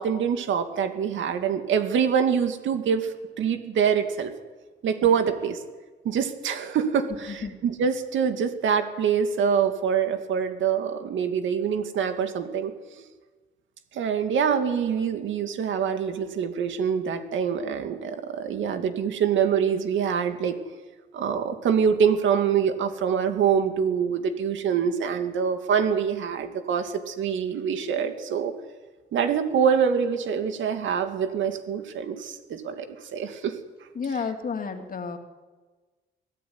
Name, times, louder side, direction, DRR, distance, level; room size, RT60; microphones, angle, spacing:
voice 1, 0.0-4.3 4.8-5.6 6.0-12.7 13.9-20.6 21.1-28.5 29.1-33.5, right 7 dB, 75° right, 7 dB, 2.4 m, -25 dB
voice 2, 33.9-35.2, left 5 dB, 45° left, 5 dB, 2.7 m, -31 dB
22.5 x 15.0 x 9.6 m, 1.3 s
cardioid pair, 90°, 20 cm